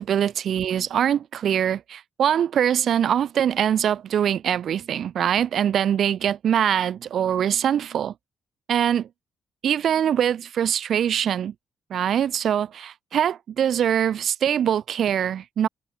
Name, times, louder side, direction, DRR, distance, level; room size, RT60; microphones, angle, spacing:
voice 1, 0.0-8.1 8.7-9.1 9.6-11.5 11.9-15.7, right 9 dB, 65° right, 4.0 m, -23 dB
cardioid pair, 90°, 0 cm